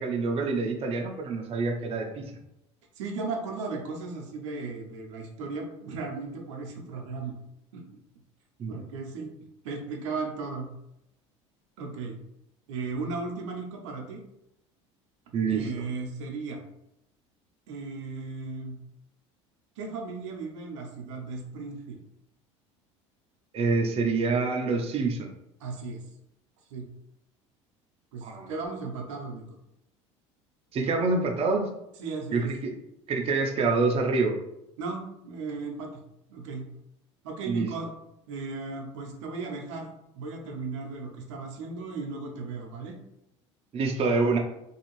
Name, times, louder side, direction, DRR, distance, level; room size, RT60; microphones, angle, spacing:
voice 1, 0.0-2.3 8.6-8.8 15.3-15.7 23.5-25.3 28.2-28.5 30.7-31.7 32.3-32.7 33.1-34.3 37.5-37.7 43.7-44.4, right 4 dB, 40° right, 2 dB, 0.5 m, -26 dB
voice 2, 3.0-7.3 7.7-7.8 8.7-10.7 11.8-12.2 12.7-14.2 15.5-16.6 17.7-18.8 19.8-22.0 25.6-26.0 26.7-26.9 28.1-29.4 32.0-32.5 34.8-36.0 36.3-36.7 37.2-37.9 38.3-39.9 40.1-43.0, right 4 dB, 80° right, 0 dB, 0.7 m, -36 dB
2.7 x 2.4 x 3.0 m, 0.83 s
hypercardioid pair, 80°, 15 cm